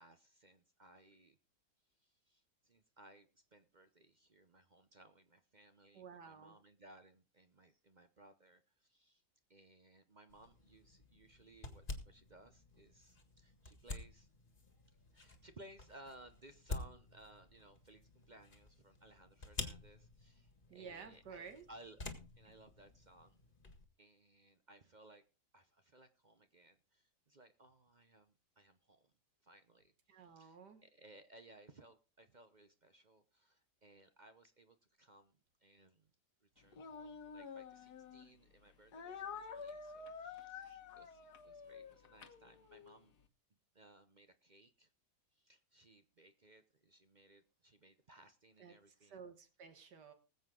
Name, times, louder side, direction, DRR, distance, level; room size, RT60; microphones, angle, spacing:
voice 1, 0.0-1.4 2.0-9.2 9.5-14.3 15.1-22.1 22.4-23.4 24.0-25.2 25.5-29.1 29.4-36.1 36.4-43.1 43.7-44.9 45.3-49.2, right 1 dB, 40° right, 9 dB, 0.7 m, -62 dB
voice 2, 5.9-6.5 20.7-21.7 22.5-22.6 30.1-30.8 48.6-48.8 49.0-50.1, right 6 dB, 75° right, 8 dB, 1.9 m, -53 dB
sound 1, 10.3-23.9, left 2 dB, 30° left, 1.9 m, -50 dB
Speech, 36.7-38.3 38.9-43.0, left 5 dB, 70° left, 1.7 m, -49 dB
20.0 x 8.0 x 3.7 m, 0.31 s
omnidirectional pair, 1.8 m